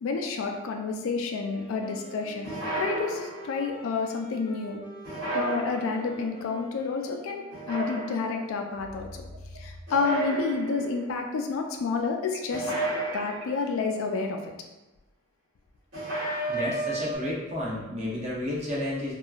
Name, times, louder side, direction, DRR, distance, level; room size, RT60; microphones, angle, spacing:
voice 1, 0.0-2.5 2.8-4.8 5.3-9.2 9.6-12.7 13.1-14.4, left 4 dB, 80° left, 4 dB, 0.4 m, -29 dB
Wind instrument woodwind instrument, 1.4-8.1, left 1 dB, 20° left, 0.4 m, -47 dB
sound 1, 2.4-3.7 5.0-6.2 7.5-8.5 9.9-11.0 12.5-13.8 15.9-17.2, right 2 dB, 70° right, 1.5 m, -32 dB
sound 2, 8.1-8.2 8.8-9.8 12.3-14.0, equal, 85° right, 0.4 m, -44 dB
voice 2, 16.5-19.1, left 1 dB, 35° right, -6 dB, 0.8 m, -31 dB
2.8 x 2.3 x 2.4 m, 1.0 s
head